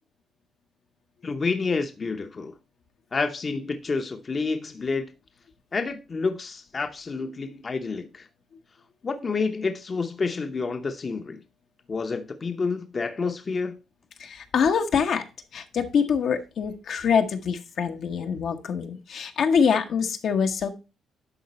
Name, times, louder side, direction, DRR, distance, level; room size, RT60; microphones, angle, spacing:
voice 1, 1.2-2.5 3.1-5.1 5.7-8.3 9.0-11.4 11.9-13.8, left 4 dB, 35° left, 0.8 m, -29 dB
voice 2, 14.2-15.2 15.5-20.7, left 6 dB, 65° left, 1.0 m, -24 dB
11.0 x 3.8 x 4.2 m
cardioid pair, 90°, 0 cm